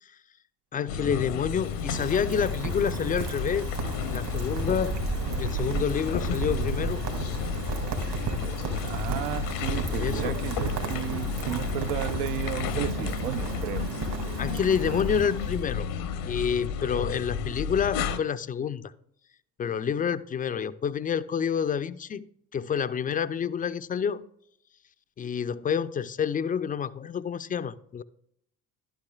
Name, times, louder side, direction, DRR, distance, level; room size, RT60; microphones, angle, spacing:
voice 1, 0.7-3.7 4.1-5.0 5.4-7.0 10.0-10.4 14.4-15.9 16.2-18.9 19.6-22.3 22.5-24.3 25.2-28.0, left 7 dB, 20° left, 14 dB, 0.3 m, -28 dB
sound 1, 0.9-18.2, left 6 dB, 75° left, 0.8 m, -32 dB
Rain, 1.0-15.8, right 5 dB, 60° right, 2.0 m, -34 dB
voice 2, 8.8-13.9, right 13 dB, 80° right, 16 dB, 0.5 m, -33 dB
11.5 x 8.9 x 2.3 m, 0.73 s
hypercardioid pair, 50°, 43 cm